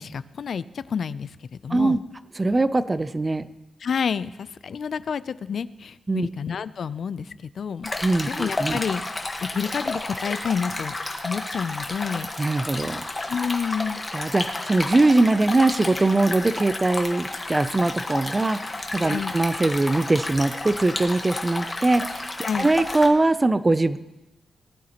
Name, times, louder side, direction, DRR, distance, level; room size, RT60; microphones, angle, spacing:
voice 1, 0.0-1.4 1.6-2.0 3.8-7.9 8.3-9.0 9.5-11.0 11.2-12.3 13.3-14.0 19.0-19.3 22.4-22.7, left 6 dB, 60° left, 16 dB, 0.3 m, -29 dB
voice 2, 2.4-3.5 6.1-6.3 8.0-8.8 12.4-13.1 14.1-22.3 22.6-24.0, right 2 dB, 20° right, 13 dB, 0.4 m, -21 dB
Stream, 7.8-23.1, left 2 dB, 20° left, 1.3 m, -31 dB
19.5 x 11.5 x 2.9 m, 1.0 s
wide cardioid pair, 145°, 0 cm